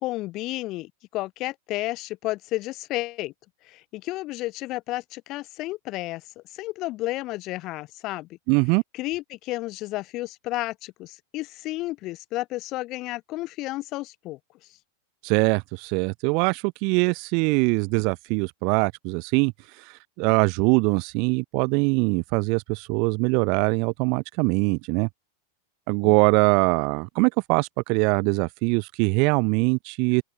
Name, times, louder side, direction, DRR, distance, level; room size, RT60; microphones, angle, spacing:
voice 1, 0.0-3.3 3.6-8.4 8.9-14.4 26.0-26.1, left 18 dB, 40° left, 0.4 m, -32 dB
voice 2, 8.5-8.8 15.2-25.1 25.9-30.2, right 33 dB, 45° right, 0.4 m, -23 dB
open air
figure-of-eight pair, 90°, 0 cm